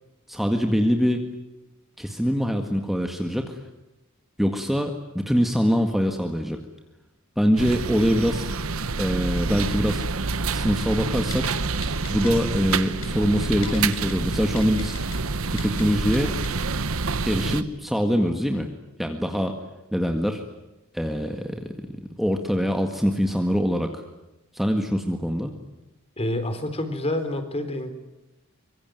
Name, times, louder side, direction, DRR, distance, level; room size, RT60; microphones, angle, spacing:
voice 1, 0.3-1.2 2.0-3.6 4.4-6.6 7.4-8.6 9.0-10.0 10.5-11.5 12.1-15.0 15.5-16.3 17.3-18.7 19.0-19.6 19.9-20.4 20.9-24.0 24.5-25.5, equal, ahead, 4 dB, 1.8 m, -24 dB
sound 1, 7.6-17.6, right 4 dB, 80° right, 1.2 m, -27 dB
Typing, 11.3-11.5 11.8-12.3 12.7-13.1 13.6-14.1 14.6-15.2 15.6-15.8 16.1-16.2 16.4-16.5, left 9 dB, 75° left, 7.5 m, -39 dB
voice 2, 26.2-27.9, left 1 dB, 30° left, 9 dB, 3.9 m, -28 dB
25.0 x 23.5 x 9.3 m, 1.0 s
head